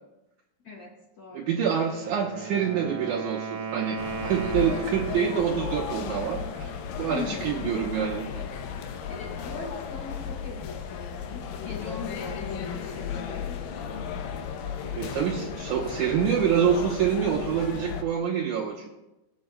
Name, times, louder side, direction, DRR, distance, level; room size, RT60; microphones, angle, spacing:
voice 1, 0.6-1.5 7.1-7.7 9.1-13.6, left 4 dB, 45° left, -7 dB, 3.1 m, -40 dB
voice 2, 1.3-6.7 7.0-8.4 15.0-18.9, right 8 dB, 70° right, -2 dB, 2.1 m, -26 dB
Wind instrument woodwind instrument, 1.8-5.6, right 6 dB, 55° right, 2.0 m, -36 dB
sound 1, 4.0-18.0, left 7 dB, 80° left, 2.5 m, -35 dB
22.5 x 7.8 x 2.2 m, 0.98 s
omnidirectional pair, 4.1 m